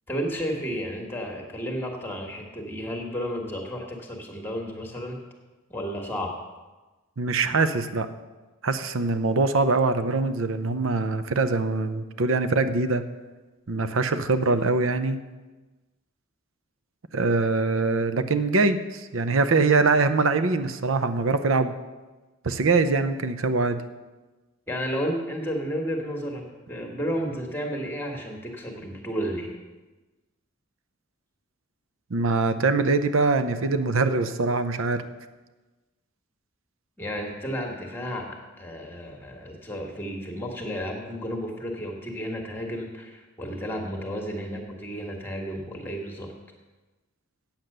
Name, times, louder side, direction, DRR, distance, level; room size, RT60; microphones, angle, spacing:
voice 1, 0.1-5.2 5.7-6.3 24.7-29.5 37.0-46.3, equal, 10° left, 1 dB, 1.4 m, -32 dB
voice 2, 7.2-8.1 8.6-13.0 13.7-15.2 17.1-21.7 22.4-23.8 32.1-35.0, right 3 dB, 70° right, 11 dB, 0.7 m, -23 dB
8.8 x 7.8 x 6.6 m, 1.2 s
head